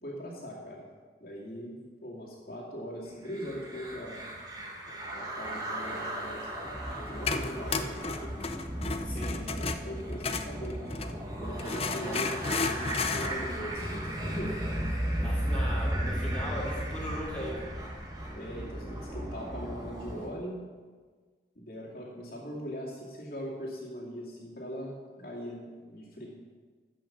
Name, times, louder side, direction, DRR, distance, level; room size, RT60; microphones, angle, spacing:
voice 1, 0.0-0.9 1.2-4.2 4.8-6.5 6.9-8.4 9.5-11.0 11.4-14.6 18.4-20.6 21.6-26.3, equal, 55° left, -4 dB, 2.3 m, -40 dB
sound 1, 3.3-20.3, right 1 dB, 20° right, 1.6 m, -35 dB
sound 2, 6.7-11.2 11.6-13.3, left 4 dB, 30° left, 0.5 m, -33 dB
voice 2, 9.0-9.5 11.8-12.2 15.2-17.6, equal, 5° left, -6 dB, 2.9 m, -38 dB
13.5 x 5.8 x 7.2 m, 1.5 s
head